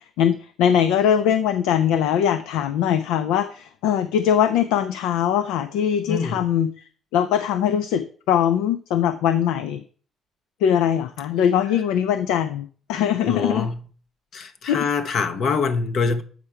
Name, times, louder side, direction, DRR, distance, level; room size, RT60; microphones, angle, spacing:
voice 1, 0.2-6.7 7.1-9.8 10.6-13.7 14.7-14.8, left 9 dB, 90° left, 0.4 m, -21 dB
voice 2, 6.1-6.4 13.2-13.8 14.3-16.2, left 5 dB, 65° left, 0.8 m, -24 dB
8.0 x 4.4 x 4.7 m
supercardioid pair, 75°, 0 cm